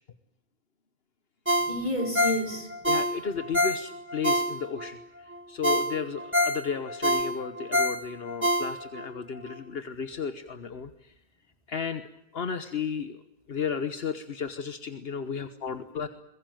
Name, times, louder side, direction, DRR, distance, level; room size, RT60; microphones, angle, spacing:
Ringtone, 1.5-4.9 5.3-5.4 5.6-9.1 9.5-9.6, equal, 10° right, 1.8 m, -26 dB
voice 1, 1.6-2.8 15.1-16.1, left 1 dB, 40° left, 4 dB, 4.7 m, -33 dB
voice 2, 2.9-11.1 11.7-12.0 12.3-13.2 13.5-16.1, left 6 dB, 70° left, 10 dB, 1.4 m, -34 dB
23.0 x 21.0 x 9.2 m, 0.83 s
omnidirectional pair, 1.0 m